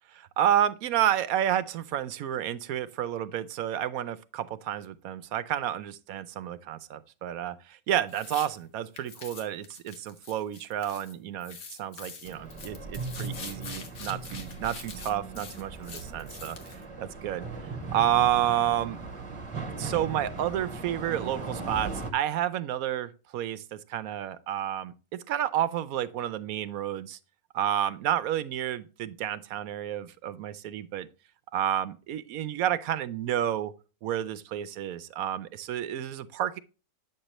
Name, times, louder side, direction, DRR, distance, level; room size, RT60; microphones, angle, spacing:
voice 1, 0.1-16.6 17.0-17.4 17.9-19.0 19.8-24.9 25.3-27.2 27.5-31.1 31.5-33.7 34.0-36.6, right 11 dB, 70° right, 15 dB, 1.0 m, -30 dB
sound 1, 8.1-8.5 9.0-11.1 11.4-16.8, left 5 dB, 65° left, 1.7 m, -44 dB
sound 2, 12.3-22.1, right 3 dB, 20° right, 1.0 m, -38 dB
8.7 x 6.6 x 3.0 m, 0.33 s
omnidirectional pair, 1.7 m